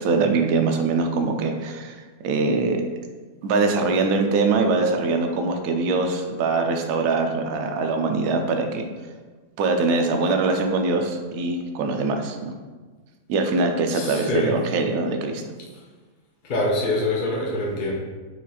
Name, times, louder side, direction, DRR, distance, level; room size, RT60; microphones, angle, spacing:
voice 1, 0.0-2.8 3.4-8.9 9.6-12.5 13.3-15.4, right 3 dB, 75° right, 4 dB, 1.0 m, -23 dB
voice 2, 13.9-14.6 16.4-17.9, left 2 dB, 50° left, -2 dB, 0.6 m, -25 dB
4.7 x 2.4 x 4.1 m, 1.4 s
omnidirectional pair, 1.5 m